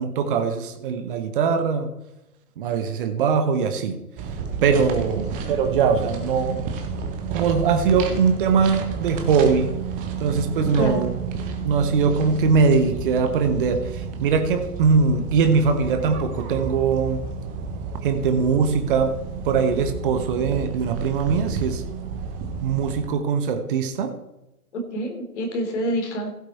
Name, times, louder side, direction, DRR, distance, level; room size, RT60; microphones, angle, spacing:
voice 1, 0.0-1.9 2.6-4.0 4.6-6.7 7.3-9.8 10.2-11.2 11.6-17.2 18.0-19.2 19.4-21.8 22.6-24.1, right 5 dB, 35° right, 7 dB, 1.2 m, -21 dB
sound 1, 4.2-23.1, right 5 dB, 15° right, 1.3 m, -31 dB
voice 2, 10.6-11.0 24.7-26.3, equal, 50° left, 2 dB, 3.4 m, -27 dB
16.0 x 8.2 x 4.3 m, 0.92 s
figure-of-eight pair, 120°, 46 cm